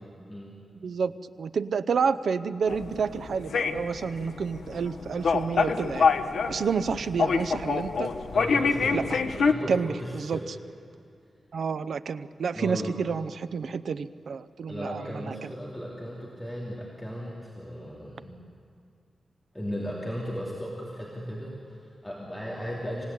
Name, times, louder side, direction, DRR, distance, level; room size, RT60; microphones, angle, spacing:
voice 1, 1.4-6.1 6.5-8.1 8.9-9.2 9.7-10.4 11.5-15.5, right 6 dB, 70° right, 13 dB, 0.7 m, -29 dB
sound 1, 2.7-9.5, left 5 dB, 80° left, 1.0 m, -26 dB
voice 2, 8.3-10.5 12.5-13.0 14.7-18.3 19.5-23.0, equal, 5° left, -5 dB, 2.9 m, -36 dB
26.5 x 17.0 x 9.8 m, 2.4 s
wide cardioid pair, 165°, 0 cm